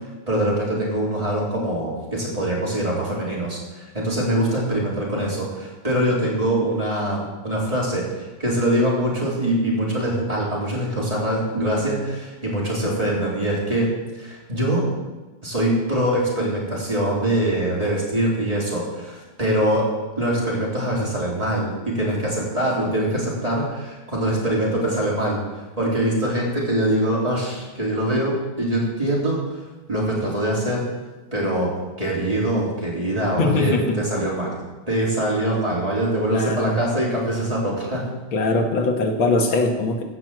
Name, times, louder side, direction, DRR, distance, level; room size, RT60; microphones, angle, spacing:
voice 1, 0.3-13.9 14.2-14.9 15.4-19.9 20.2-25.4 25.8-29.4 29.9-30.8 31.3-31.7 32.0-34.6 34.9-38.0, right 1 dB, 15° right, -5 dB, 3.6 m, -23 dB
voice 2, 33.4-34.0 36.3-36.8 38.3-40.0, left 3 dB, 85° left, 3 dB, 2.3 m, -21 dB
15.5 x 6.0 x 7.7 m, 1.2 s
omnidirectional pair, 2.2 m